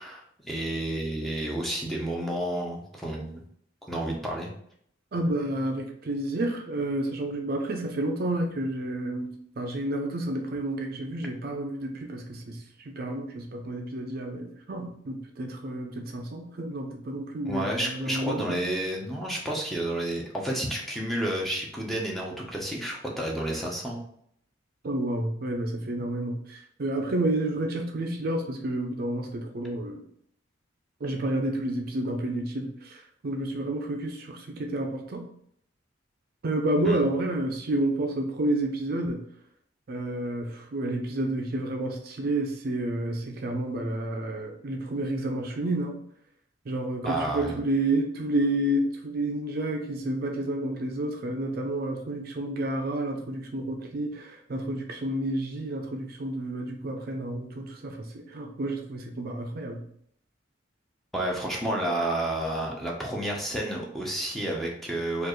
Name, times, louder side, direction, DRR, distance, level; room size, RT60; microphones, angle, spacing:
voice 1, 0.0-3.4 3.9-4.5 17.4-24.0 36.8-37.0 47.0-47.6 61.1-65.3, right 1 dB, ahead, -2 dB, 0.7 m, -30 dB
voice 2, 5.1-12.6 12.9-18.6 24.8-30.1 31.0-35.3 36.4-39.2 39.9-46.0 46.7-59.9, right 1 dB, 50° right, 3 dB, 0.5 m, -30 dB
4.4 x 2.4 x 3.0 m, 0.67 s
head